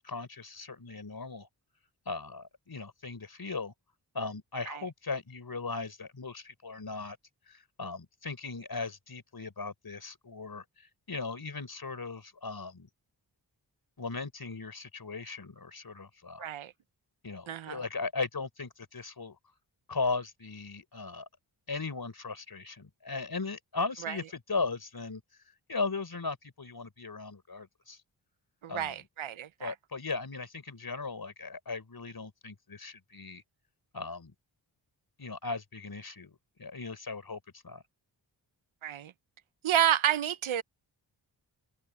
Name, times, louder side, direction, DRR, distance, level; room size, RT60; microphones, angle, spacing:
voice 1, 0.0-1.5 2.1-3.7 4.1-7.2 7.5-12.9 14.0-16.5 17.2-19.4 19.9-21.3 21.7-25.2 25.7-28.0 28.7-29.0 29.6-33.4 33.9-34.3 35.2-37.8, left 4 dB, 50° left, 4.3 m, -37 dB
voice 2, 16.4-16.7 17.5-17.8 24.0-24.1 28.6-29.7 38.8-39.1 39.6-40.6, right 10 dB, 80° right, 0.8 m, -30 dB
open air
cardioid pair, 60°, 47 cm